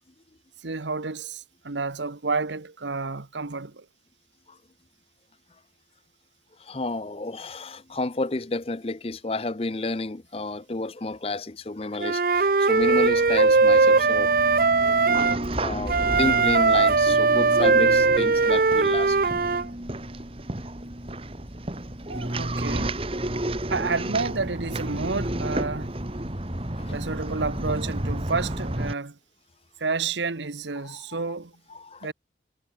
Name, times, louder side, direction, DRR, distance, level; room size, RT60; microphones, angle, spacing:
voice 1, 0.6-3.8 22.1-23.0 23.7-25.9 26.9-29.2 29.8-31.5 32.0-32.1, right 4 dB, 85° right, 1.2 m, -30 dB
voice 2, 6.6-14.6 15.6-19.2 26.8-27.0 30.8-31.0 31.7-32.1, left 2 dB, 30° left, 0.7 m, -31 dB
Wind instrument woodwind instrument, 12.0-15.4 15.9-19.6, right 4 dB, 50° right, 0.6 m, -20 dB
sound 1, 12.8-28.9, right 1 dB, 30° right, 2.0 m, -32 dB
head